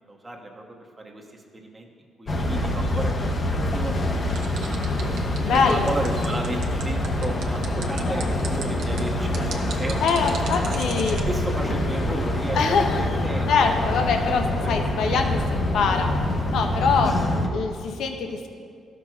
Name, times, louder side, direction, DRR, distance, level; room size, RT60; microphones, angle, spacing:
voice 1, 0.0-1.9 2.2-4.2 5.5-10.7 11.3-14.1 14.6-15.5 16.7-16.8, right 1 dB, 20° right, 1 dB, 1.0 m, -34 dB
sound 1, 2.3-17.5, left 1 dB, 35° left, 0.7 m, -25 dB
sound 2, 4.3-11.2, right 6 dB, 75° right, 0.7 m, -37 dB
voice 2, 5.4-5.9 10.0-11.2 12.5-13.0 13.5-16.1 16.5-17.2 17.5-18.5, left 5 dB, 75° left, 4 dB, 0.5 m, -23 dB
12.5 x 6.0 x 2.3 m, 2.2 s
cardioid pair, 90°, 0 cm